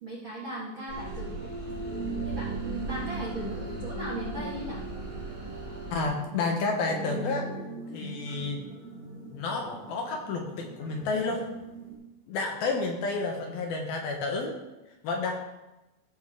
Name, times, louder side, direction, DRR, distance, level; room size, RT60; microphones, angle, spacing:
voice 1, 0.0-1.5 2.2-4.8, right 1 dB, 70° right, -5 dB, 1.1 m, -38 dB
sound 1, 0.9-6.0, right 1 dB, 45° right, 5.0 m, -38 dB
sound 2, 1.7-12.0, right 3 dB, 40° left, 5.3 m, -40 dB
voice 2, 5.9-7.5 7.9-8.7 9.3-11.4 12.3-14.5 15.0-15.4, left 3 dB, 70° left, 2 dB, 2.5 m, -30 dB
15.0 x 7.0 x 3.6 m, 1.0 s
omnidirectional pair, 5.1 m